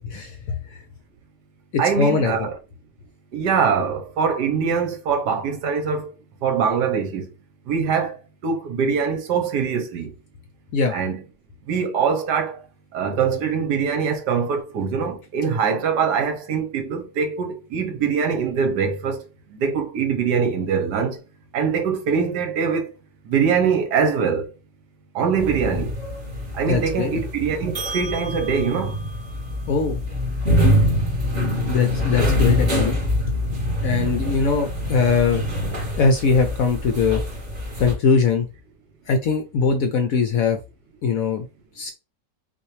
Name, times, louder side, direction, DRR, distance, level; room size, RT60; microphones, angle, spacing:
voice 1, 0.1-0.6 1.9-2.3 10.7-10.9 26.7-27.2 29.7-30.0 31.7-33.0 33.3-33.4 33.8-35.4 36.0-37.2 37.8-38.5 39.1-40.6 41.0-41.4 41.8-41.9, left 5 dB, 65° left, 0.9 m, -21 dB
voice 2, 1.8-2.5 3.3-6.1 6.4-7.3 7.7-10.1 10.9-11.2 11.7-12.6 12.9-21.2 21.5-22.9 23.2-24.5 25.1-26.0 26.5-29.0, right 6 dB, 70° right, 1.4 m, -23 dB
sound 1, 25.4-37.9, left 1 dB, 40° right, 2.2 m, -24 dB
5.6 x 2.7 x 3.2 m
omnidirectional pair, 1.9 m